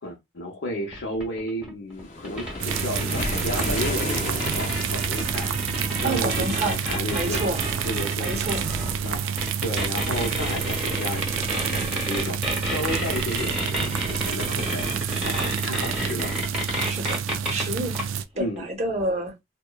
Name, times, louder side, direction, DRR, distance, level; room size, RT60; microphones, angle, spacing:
voice 1, 0.0-8.5 9.0-16.3 18.4-18.6, left 1 dB, 75° left, 0.7 m, -33 dB
sound 1, 0.9-17.7 17.9-18.0 18.6-18.7, equal, 5° right, 1.0 m, -30 dB
Waves surf, 2.0-5.3, left 2 dB, 40° left, 0.6 m, -32 dB
sound 2, 2.6-18.2, right 8 dB, 85° right, 0.3 m, -29 dB
voice 2, 6.0-6.8 7.1-7.6 8.2-8.6 16.8-17.2 17.5-18.0 18.4-19.3, right 2 dB, 35° right, 0.7 m, -28 dB
2.9 x 2.1 x 2.2 m
head